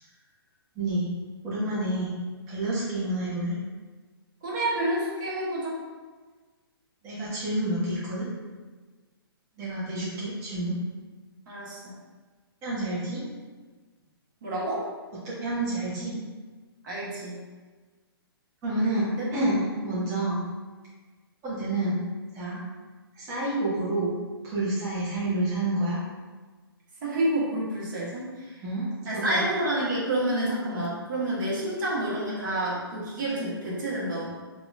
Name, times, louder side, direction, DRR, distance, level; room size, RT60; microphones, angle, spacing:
voice 1, 0.7-1.1 1.4-2.2 2.5-3.5 7.0-8.3 9.6-10.8 12.6-13.2 15.2-16.2 18.6-20.5 21.4-22.1 22.3-22.6 23.1-24.2 24.4-26.0 28.6-29.4, right 1 dB, 25° right, -9 dB, 1.3 m, -29 dB
voice 2, 4.4-5.8 11.5-12.0 14.4-14.8 16.8-17.4 19.1-19.3 19.8-19.9 27.0-28.6 29.0-34.3, right 1 dB, 50° right, -7 dB, 1.4 m, -29 dB
4.9 x 2.9 x 2.5 m, 1.4 s
figure-of-eight pair, 125°, 13 cm